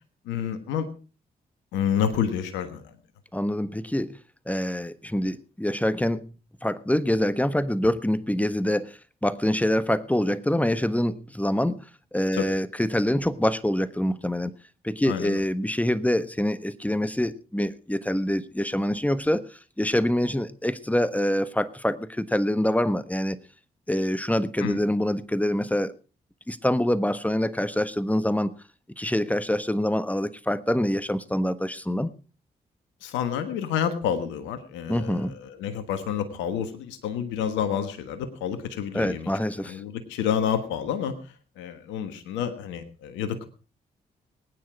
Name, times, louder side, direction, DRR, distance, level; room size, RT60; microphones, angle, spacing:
voice 1, 0.2-0.9 1.7-2.9 12.3-12.5 15.0-15.4 24.6-24.8 33.0-39.3 39.6-43.4, left 8 dB, 85° left, 10 dB, 1.4 m, -29 dB
voice 2, 3.3-4.2 4.5-6.3 6.6-11.8 12.1-14.5 14.8-23.4 23.9-25.9 26.5-28.6 29.0-32.1 34.9-35.3 38.9-39.8, left 1 dB, 10° left, 14 dB, 1.3 m, -25 dB
19.5 x 9.5 x 4.7 m, 0.36 s
hypercardioid pair, 40°, 19 cm